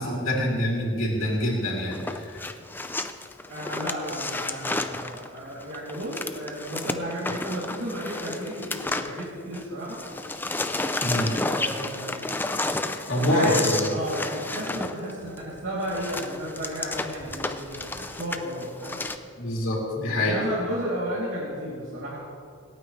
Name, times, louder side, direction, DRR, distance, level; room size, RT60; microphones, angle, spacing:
voice 1, 0.0-2.2 11.0-11.4 13.1-13.9 19.4-20.4, left 1 dB, 85° left, -3 dB, 3.2 m, -25 dB
sound 1, 1.9-9.6 9.9-19.2, left 2 dB, 10° left, 0.4 m, -31 dB
voice 2, 3.5-10.0 11.1-12.3 13.1-19.0 20.1-22.2, right 1 dB, 70° right, -9 dB, 3.0 m, -33 dB
26.5 x 9.1 x 3.3 m, 2.3 s
head